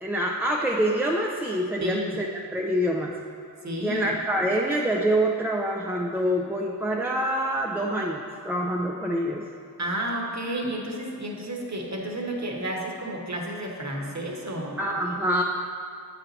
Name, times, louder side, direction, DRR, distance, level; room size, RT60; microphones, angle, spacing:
voice 1, 0.0-2.3 2.5-3.1 3.8-9.4 14.8-15.4, right 1 dB, 5° right, -1 dB, 0.4 m, -26 dB
voice 2, 1.8-2.2 3.6-4.1 9.8-14.8, right 1 dB, 40° right, 0 dB, 1.2 m, -31 dB
7.9 x 4.4 x 4.0 m, 2.4 s
cardioid pair, 40°, 42 cm